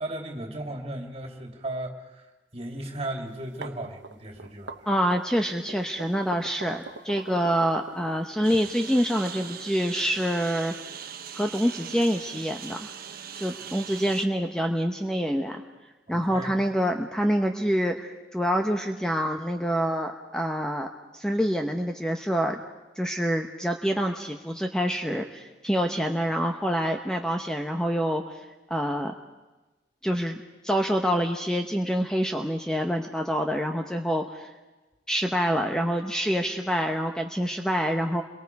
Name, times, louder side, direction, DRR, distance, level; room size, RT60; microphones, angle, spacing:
voice 1, 0.0-2.2 2.5-4.9 16.1-16.5, right 1 dB, 35° right, 2 dB, 3.0 m, -36 dB
sound 1, 3.3-8.6, right 3 dB, 80° right, 1.0 m, -42 dB
voice 2, 4.9-10.7 11.3-12.9 13.4-15.6 16.1-20.9 21.1-22.6 23.0-28.2 28.7-29.1 30.0-34.5 35.1-38.2, equal, 5° left, 4 dB, 0.9 m, -26 dB
Engine, 8.4-14.3, right 8 dB, 55° right, 1.1 m, -40 dB
28.0 x 23.0 x 4.7 m, 1.2 s
head